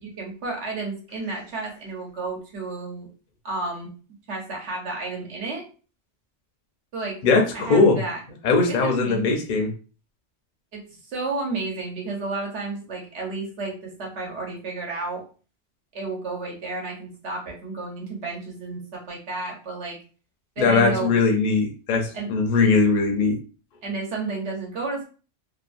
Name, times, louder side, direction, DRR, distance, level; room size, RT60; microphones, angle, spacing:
voice 1, 0.0-3.1 3.4-3.9 4.3-5.6 6.9-7.2 7.5-8.2 8.7-9.4 10.7-15.2 15.9-20.0 20.6-21.2 22.1-22.3 23.8-25.0, right 3 dB, 70° right, -1 dB, 1.1 m, -32 dB
voice 2, 7.2-8.0 8.4-9.7 20.6-23.4, left 4 dB, 50° left, 3 dB, 0.6 m, -20 dB
2.9 x 2.2 x 2.4 m, 0.37 s
omnidirectional pair, 1.3 m